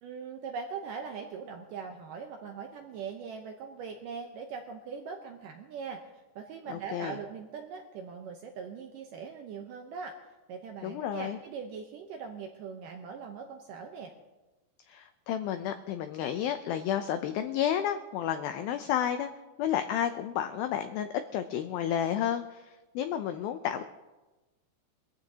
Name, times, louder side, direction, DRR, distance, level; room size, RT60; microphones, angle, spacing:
voice 1, 0.0-6.0 6.4-10.1 10.5-14.1, right 6 dB, 85° right, 4 dB, 1.9 m, -41 dB
voice 2, 6.7-7.2 10.8-11.4 14.9-19.3 19.6-23.8, left 10 dB, 90° left, 9 dB, 2.1 m, -31 dB
22.5 x 15.0 x 2.8 m, 1.2 s
omnidirectional pair, 5.0 m